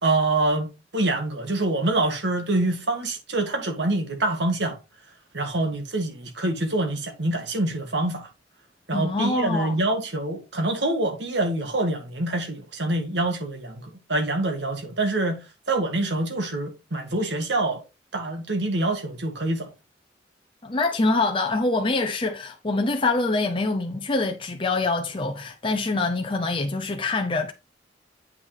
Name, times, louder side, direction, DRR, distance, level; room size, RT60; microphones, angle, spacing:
voice 1, 0.0-4.8 5.3-8.3 8.9-15.4 15.7-17.8 18.1-19.7, right 2 dB, 70° right, 1.8 m, -25 dB
voice 2, 8.9-9.8 20.6-27.5, left 3 dB, 30° left, 0.7 m, -25 dB
8.0 x 5.9 x 3.4 m
head